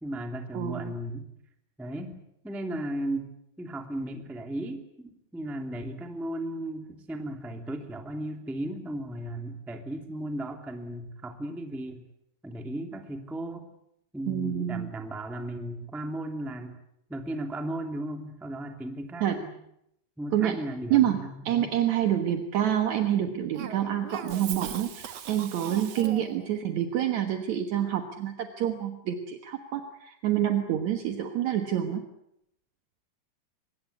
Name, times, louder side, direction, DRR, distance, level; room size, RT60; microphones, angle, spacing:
voice 1, 0.0-1.3 1.8-2.1 2.4-3.3 3.6-12.1 12.4-13.7 14.1-16.8 17.1-19.5 20.2-21.7, right 1 dB, ahead, 5 dB, 1.1 m, -35 dB
voice 2, 0.5-0.9 14.3-14.9 19.2-19.4 20.3-20.6 20.9-21.2 21.5-32.0, right 11 dB, 60° right, 6 dB, 2.0 m, -27 dB
Cough, 23.5-26.5, right 9 dB, 90° right, 1.4 m, -39 dB
24.5 x 22.0 x 8.3 m, 0.77 s
omnidirectional pair, 5.1 m